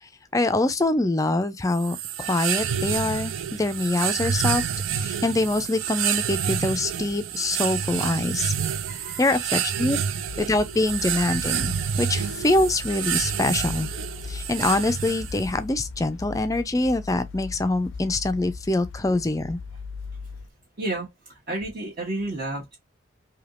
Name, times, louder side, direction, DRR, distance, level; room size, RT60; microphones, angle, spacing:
voice 1, 0.0-4.7 5.0-8.5 9.2-10.0 10.4-13.9 14.2-19.6, left 2 dB, 15° left, 0.4 m, -24 dB
sound 1, 1.7-15.6, right 8 dB, 85° right, 0.5 m, -28 dB
voice 2, 8.6-9.3 9.8-10.3 20.8-22.8, right 2 dB, 50° right, 1.0 m, -33 dB
sound 2, 10.3-20.5, left 4 dB, 80° left, 0.5 m, -39 dB
3.4 x 2.8 x 2.4 m
head